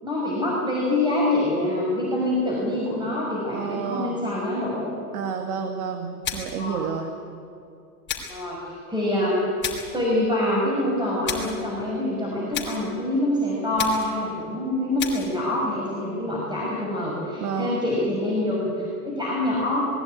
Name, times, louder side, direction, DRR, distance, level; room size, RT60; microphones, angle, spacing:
voice 1, 0.0-4.9 6.6-6.9 8.3-9.4 9.9-19.8, left 1 dB, 10° right, -5 dB, 5.9 m, -25 dB
voice 2, 3.5-4.2 5.1-7.1 17.4-17.8, right 6 dB, 60° right, 5 dB, 1.9 m, -30 dB
sound 1, 6.2-6.7 8.1-8.4 9.6-10.0 11.2-11.6 12.5-12.9 13.8-14.2 15.0-15.4, left 7 dB, 25° left, 3.9 m, -32 dB
20.5 x 15.5 x 9.6 m, 2.6 s
hypercardioid pair, 125°, 44 cm